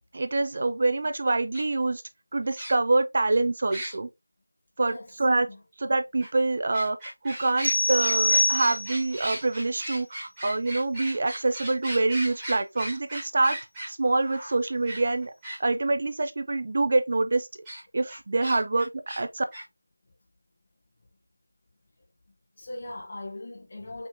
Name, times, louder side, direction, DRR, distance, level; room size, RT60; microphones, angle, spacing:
voice 1, 0.1-2.0 2.3-4.1 4.8-5.5 5.8-7.0 7.2-13.6 13.9-15.3 15.6-17.5 17.9-18.9 19.2-19.4, right 2 dB, 35° right, 0.4 m, -25 dB
sound 1, 1.5-1.6 2.6-3.0 3.7-4.0 6.2-6.3 6.7-15.6 17.7-17.8 18.1-19.2 19.5-19.6, right 1 dB, 5° right, 1.5 m, -37 dB
voice 2, 4.8-5.1 5.5-5.6 22.6-24.1, left 2 dB, 30° left, 1.1 m, -39 dB
sound 2, 7.6-9.2, left 2 dB, 55° left, 0.5 m, -24 dB
5.5 x 2.9 x 2.5 m
figure-of-eight pair, 175°, 0 cm